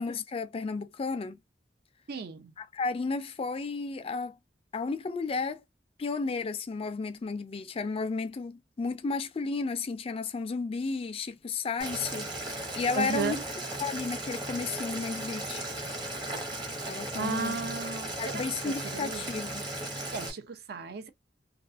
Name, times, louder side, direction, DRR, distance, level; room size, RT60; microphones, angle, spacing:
voice 1, 0.0-1.4 2.6-4.4 4.7-5.6 6.0-13.4 13.8-15.6 16.8-17.6 18.2-19.6, left 4 dB, 35° left, 0.3 m, -33 dB
voice 2, 2.1-2.5 13.0-13.4 17.1-19.3 19.9-21.1, right 4 dB, 60° right, 0.4 m, -35 dB
Boiling, 11.8-20.3, right 1 dB, 25° right, 0.8 m, -36 dB
2.4 x 2.4 x 2.4 m
head